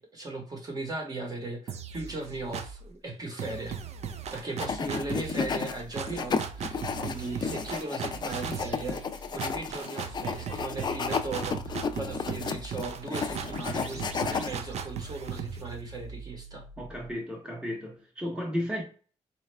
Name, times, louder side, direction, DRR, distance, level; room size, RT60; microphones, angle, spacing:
voice 1, 0.0-3.8 4.3-9.0 9.3-11.6 11.9-16.7, right 2 dB, 30° right, 1.0 m, -37 dB
sound 1, 1.7-2.9 3.4-17.1, right 6 dB, 60° right, 0.4 m, -38 dB
sound 2, 4.6-5.7 6.1-14.5, left 5 dB, 35° left, 0.3 m, -32 dB
voice 2, 16.8-18.8, equal, 5° right, 0.8 m, -33 dB
4.2 x 2.3 x 3.2 m
wide cardioid pair, 150°, 12 cm